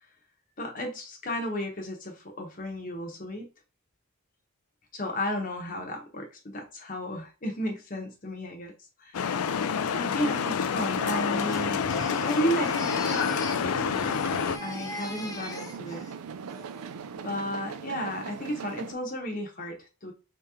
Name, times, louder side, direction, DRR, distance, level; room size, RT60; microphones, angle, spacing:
voice 1, 0.6-3.4 4.9-8.7 9.0-9.5 9.9-11.8 12.2-13.2 13.5-14.3 14.6-16.1 17.2-20.1, equal, 40° left, 2 dB, 0.9 m, -33 dB
sound 1, 9.1-14.6, left 6 dB, 85° left, 0.4 m, -28 dB
sound 2, 10.8-18.9, right 6 dB, 90° right, 0.4 m, -40 dB
Crying sobbing, 11.1-13.7 13.9-16.1 16.5-16.9, left 2 dB, 15° left, 0.5 m, -40 dB
4.4 x 2.9 x 3.6 m, 0.31 s
head